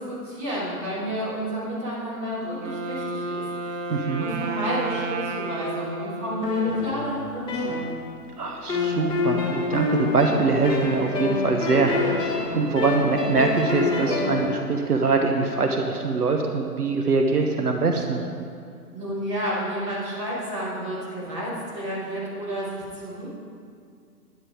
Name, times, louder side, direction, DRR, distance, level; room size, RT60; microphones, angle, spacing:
voice 1, 0.0-3.4 4.2-7.8 18.9-23.3, equal, 15° right, -8 dB, 3.5 m, -31 dB
Wind instrument woodwind instrument, 2.4-7.3, right 3 dB, 50° right, 1.0 m, -32 dB
voice 2, 3.9-4.2 8.4-18.2, right 4 dB, 70° right, 3 dB, 1.2 m, -23 dB
sound 1, 6.4-8.3 8.7-14.5, left 4 dB, 10° left, 1.7 m, -26 dB
11.5 x 10.5 x 4.9 m, 2.3 s
figure-of-eight pair, 130°, 47 cm